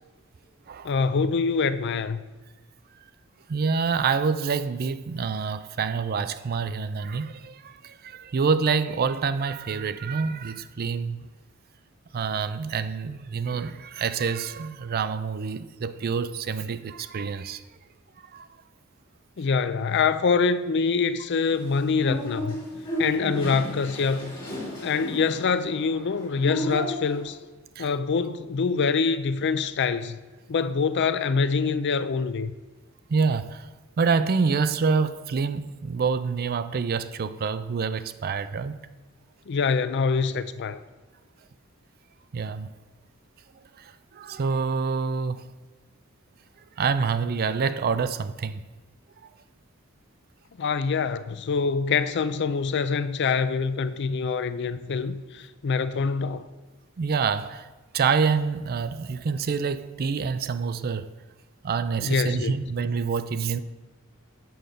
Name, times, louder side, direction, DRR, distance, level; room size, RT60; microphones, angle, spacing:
voice 1, 0.8-2.2 19.4-22.6 23.0-24.3 24.8-27.4 27.8-30.2 30.5-32.5 39.5-40.8 50.6-56.5 62.0-62.5, left 5 dB, 55° left, 0.4 m, -25 dB
voice 2, 3.5-11.2 12.1-17.6 18.3-18.5 27.8-27.9 33.1-33.7 34.0-38.9 42.3-42.7 43.8-45.5 46.8-48.6 49.2-49.3 57.0-57.7 57.9-61.1 61.6-63.6, right 5 dB, 45° right, 0.4 m, -27 dB
sound 1, 21.4-27.2, equal, 20° left, 3.3 m, -33 dB
7.8 x 5.2 x 6.6 m
head